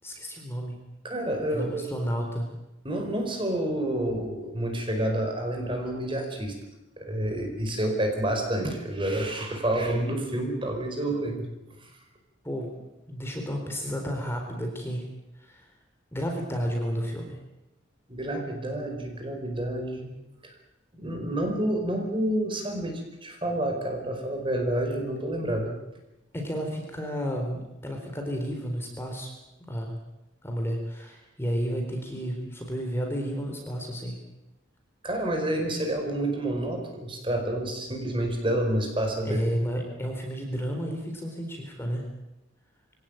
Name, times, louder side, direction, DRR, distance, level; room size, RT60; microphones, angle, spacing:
voice 1, 0.0-0.8 1.5-2.5 12.4-12.7 13.1-15.1 15.3-15.7 16.1-17.4 26.3-29.3 29.6-30.0 30.4-34.2 39.2-42.0, equal, 10° left, 2 dB, 4.1 m, -32 dB
voice 2, 1.0-1.8 2.8-6.5 7.0-11.5 11.8-11.9 18.1-20.1 20.4-20.5 20.9-25.8 35.0-39.4, right 1 dB, 25° right, 3 dB, 5.0 m, -29 dB
24.0 x 17.5 x 9.1 m, 0.95 s
head